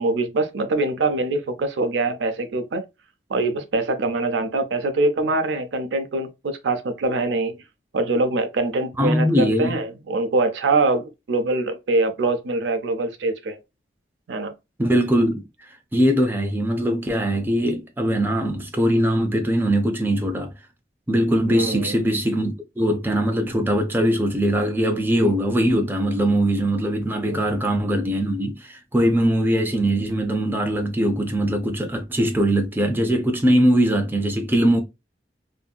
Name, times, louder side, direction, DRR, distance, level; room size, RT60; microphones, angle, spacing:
voice 1, 0.0-2.8 3.3-7.6 7.9-13.6 14.3-14.5 21.5-22.0 27.3-27.5, right 2 dB, 90° right, 0.5 m, -23 dB
voice 2, 9.0-9.8 14.8-15.4 15.9-20.5 21.1-34.8, equal, 10° right, 0.4 m, -21 dB
2.6 x 2.6 x 2.2 m
head